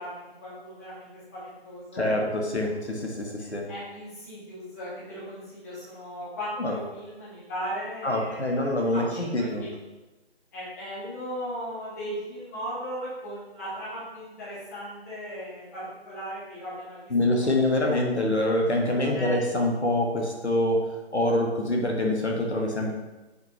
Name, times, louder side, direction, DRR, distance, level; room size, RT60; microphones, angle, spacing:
voice 1, 0.0-2.7 3.4-9.7 10.5-17.4 17.7-18.0 19.0-19.7, equal, 15° left, -10 dB, 1.5 m, -38 dB
voice 2, 1.9-3.7 6.6-6.8 8.0-9.6 17.1-22.9, left 1 dB, 85° left, 0 dB, 1.3 m, -25 dB
6.3 x 5.0 x 3.0 m, 1.1 s
figure-of-eight pair, 155°, 33 cm